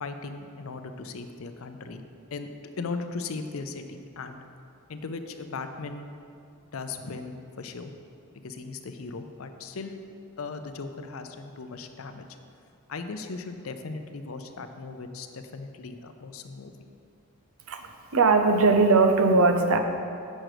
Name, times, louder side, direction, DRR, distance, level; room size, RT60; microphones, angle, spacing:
voice 1, 0.0-2.0 2.3-2.5 2.8-4.4 4.9-6.1 6.7-7.9 8.4-10.0 10.4-12.3 12.9-16.7, left 4 dB, 65° left, 8 dB, 0.5 m, -37 dB
voice 2, 17.7-19.8, right 3 dB, 70° right, 6 dB, 0.7 m, -20 dB
7.6 x 6.3 x 4.9 m, 2.5 s
head